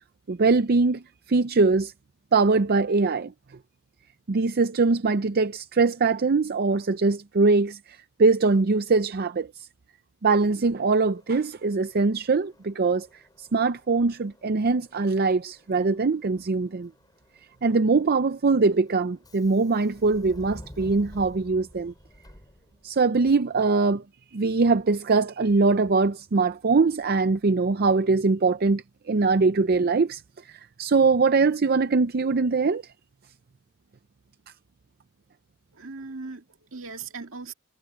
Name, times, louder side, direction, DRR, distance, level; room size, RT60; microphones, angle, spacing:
voice 1, 0.3-1.0 1.3-1.9 2.3-3.3 4.3-9.7 10.2-16.9 17.6-21.9 22.8-24.0 24.3-32.8, right 4 dB, 45° right, 0.5 m, -22 dB
Subway metro underground, 11.1-23.1, equal, 20° left, 4.2 m, -51 dB
voice 2, 35.7-37.5, right 4 dB, 70° right, 2.2 m, -39 dB
head